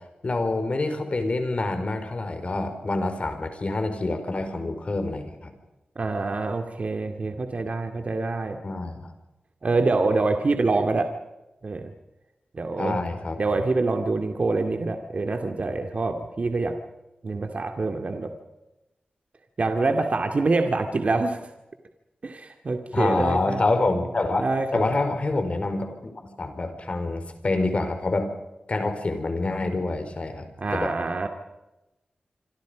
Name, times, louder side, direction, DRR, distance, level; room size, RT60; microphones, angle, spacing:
voice 1, 0.2-5.5 8.6-9.1 12.8-13.6 22.9-28.3 28.7-30.9, left 2 dB, 45° left, 8 dB, 4.7 m, -27 dB
voice 2, 6.0-8.6 9.6-11.1 11.6-11.9 12.5-13.0 13.4-16.7 17.2-18.3 19.6-21.5 22.2-23.6 24.4-24.8 30.6-31.3, right 3 dB, 50° right, 5 dB, 2.3 m, -25 dB
26.5 x 26.5 x 5.2 m, 0.98 s
wide cardioid pair, 100°, 3 cm